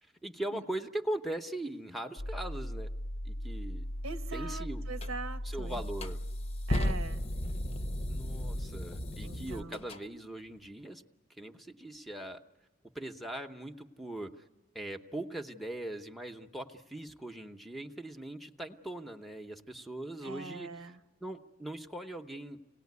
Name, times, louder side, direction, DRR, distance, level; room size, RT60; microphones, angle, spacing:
voice 1, 0.0-2.9 3.2-3.9 4.3-4.8 5.4-6.2 8.1-11.0 11.4-12.4 12.9-14.4 14.7-20.9 21.2-22.6, right 1 dB, ahead, 6 dB, 0.8 m, -40 dB
sound 1, 2.2-8.7, equal, 60° left, 0.7 m, -38 dB
voice 2, 4.0-5.8 6.7-7.2 9.2-9.8 20.2-21.0, right 3 dB, 85° right, 9 dB, 1.1 m, -42 dB
sound 2, 5.0-5.1 5.7-10.0, left 1 dB, 30° left, 0.7 m, -36 dB
26.5 x 18.0 x 9.5 m, 1.1 s
head